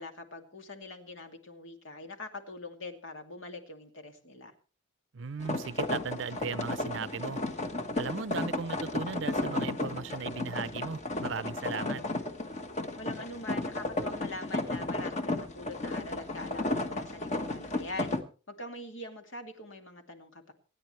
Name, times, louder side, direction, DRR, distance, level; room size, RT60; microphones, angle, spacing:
voice 1, 0.0-4.5 13.0-18.1 18.5-20.5, left 2 dB, 65° left, 2.5 m, -43 dB
voice 2, 5.1-7.4 8.0-12.0, right 5 dB, 65° right, 0.6 m, -37 dB
sound 1, 5.4-18.2, left 2 dB, 35° left, 1.4 m, -34 dB
27.5 x 9.7 x 3.3 m
head